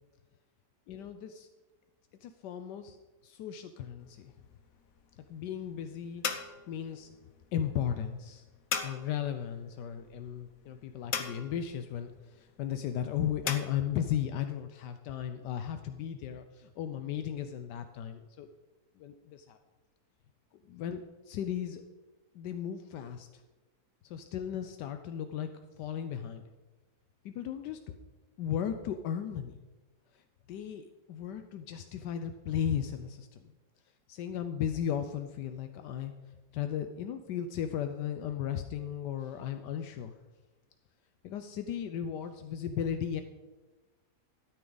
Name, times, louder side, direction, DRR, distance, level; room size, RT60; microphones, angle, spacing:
voice 1, 0.9-1.5 2.2-3.0 3.2-4.3 5.3-6.3 6.7-7.1 7.5-8.4 8.8-18.5 19.0-19.6 20.6-21.8 22.3-23.4 24.0-25.5 25.8-26.4 27.2-27.8 28.4-29.6 30.1-30.2 30.5-33.5 34.1-36.1 36.5-40.1 41.2-43.2, left 9 dB, 80° left, 8 dB, 1.2 m, -36 dB
sound 1, 4.0-13.6, left 7 dB, 60° left, 1.2 m, -40 dB
13.0 x 9.6 x 3.9 m, 1.2 s
omnidirectional pair, 1.8 m